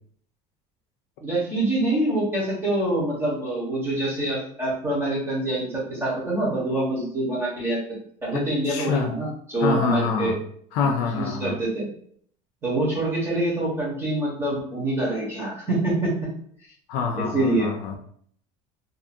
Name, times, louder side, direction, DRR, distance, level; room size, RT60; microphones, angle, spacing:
voice 1, 1.2-7.8 8.2-10.4 11.1-11.9 12.6-16.1 17.2-17.7, right 1 dB, 15° right, -6 dB, 1.1 m, -25 dB
voice 2, 8.3-9.2 9.6-10.4 10.7-11.6 16.9-18.0, left 5 dB, 70° left, 4 dB, 0.4 m, -26 dB
2.6 x 2.5 x 2.6 m, 0.62 s
cardioid pair, 160°, 15 cm